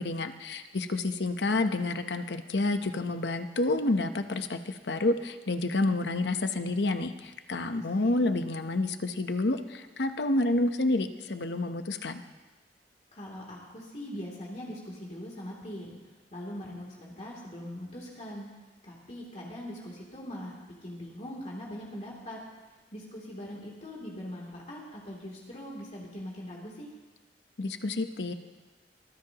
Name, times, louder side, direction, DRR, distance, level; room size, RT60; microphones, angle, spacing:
voice 1, 0.0-12.2 27.6-28.3, left 2 dB, 75° left, 8 dB, 0.9 m, -29 dB
voice 2, 13.1-15.9 16.3-18.5 18.8-20.5 20.8-22.4 22.9-26.9, equal, 40° left, -4 dB, 3.0 m, -41 dB
23.5 x 15.0 x 3.0 m, 1.2 s
head